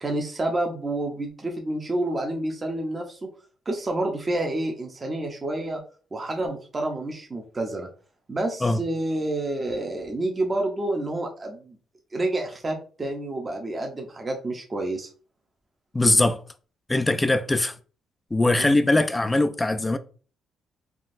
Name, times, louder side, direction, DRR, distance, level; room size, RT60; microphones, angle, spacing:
voice 1, 0.0-3.2 3.7-5.8 6.1-7.9 8.3-11.8 12.1-15.1 18.6-18.8, right 1 dB, 30° right, 0.7 m, -29 dB
voice 2, 15.9-16.4 16.9-17.7 18.3-20.0, left 2 dB, 15° left, 0.3 m, -21 dB
3.6 x 2.4 x 2.6 m
cardioid pair, 90°, 0 cm